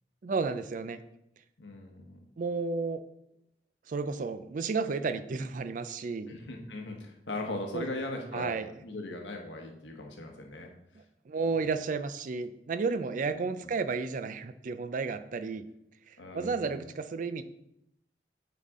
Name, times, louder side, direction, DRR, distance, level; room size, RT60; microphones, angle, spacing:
voice 1, 0.2-1.0 2.4-3.0 3.9-6.3 7.7-7.8 8.3-8.7 11.3-15.7 16.1-17.4, right 4 dB, 45° right, 11 dB, 0.4 m, -32 dB
voice 2, 1.6-2.2 6.3-10.7 13.6-13.7 16.2-16.9, left 2 dB, 85° left, 2 dB, 1.2 m, -39 dB
9.0 x 4.0 x 3.6 m, 0.81 s
head